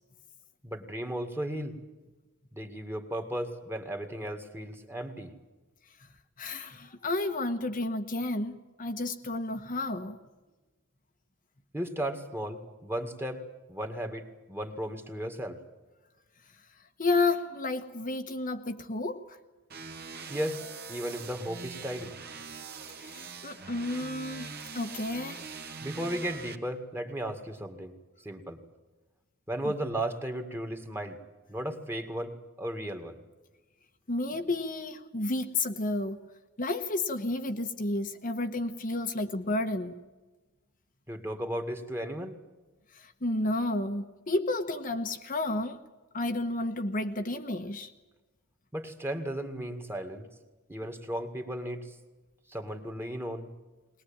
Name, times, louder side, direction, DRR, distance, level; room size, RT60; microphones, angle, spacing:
voice 1, 0.6-1.7 2.5-5.3 11.7-13.4 13.7-15.6 20.3-20.6 20.9-22.1 25.8-28.6 29.5-31.2 31.5-33.2 41.1-42.4 48.7-50.3 50.7-52.0 52.5-53.5, right 1 dB, 10° right, 5 dB, 2.0 m, -35 dB
voice 2, 6.4-10.2 17.0-19.4 23.0-25.4 34.1-36.3 36.6-40.0 42.9-45.8 46.1-47.9, left 2 dB, 40° left, 5 dB, 1.1 m, -31 dB
sound 1, 19.7-26.5, right 4 dB, 45° right, 1.9 m, -43 dB
21.0 x 20.5 x 8.8 m, 1.2 s
head